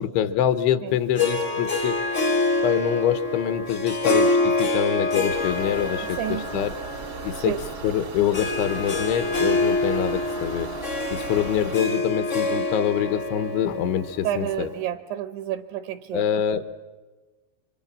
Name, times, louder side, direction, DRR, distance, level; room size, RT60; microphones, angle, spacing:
voice 1, 0.0-2.0 2.6-6.8 7.2-7.6 7.8-10.7 11.1-14.7 16.1-16.8, left 10 dB, 75° left, 12 dB, 3.2 m, -25 dB
Harp, 1.1-14.8, left 2 dB, 50° left, 0.8 m, -26 dB
sound 1, 5.3-11.7, right 5 dB, 55° right, 1.3 m, -37 dB
voice 2, 6.2-6.7 7.4-7.6 14.2-16.2, right 11 dB, 75° right, 11 dB, 3.1 m, -30 dB
29.5 x 25.0 x 7.4 m, 1.3 s
omnidirectional pair, 5.6 m